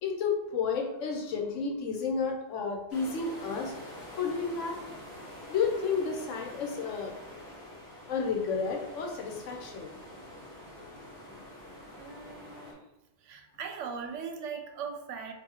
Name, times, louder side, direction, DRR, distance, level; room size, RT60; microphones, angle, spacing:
voice 1, 0.0-3.7 4.2-4.8 5.5-7.1 8.1-9.9, left 5 dB, 85° left, 1 dB, 1.1 m, -31 dB
sound 1, 2.9-12.7, left 1 dB, 20° left, 1.5 m, -46 dB
voice 2, 12.0-12.9 13.2-15.3, right 6 dB, 85° right, 4 dB, 0.9 m, -39 dB
4.6 x 2.7 x 2.9 m, 0.88 s
omnidirectional pair, 1.3 m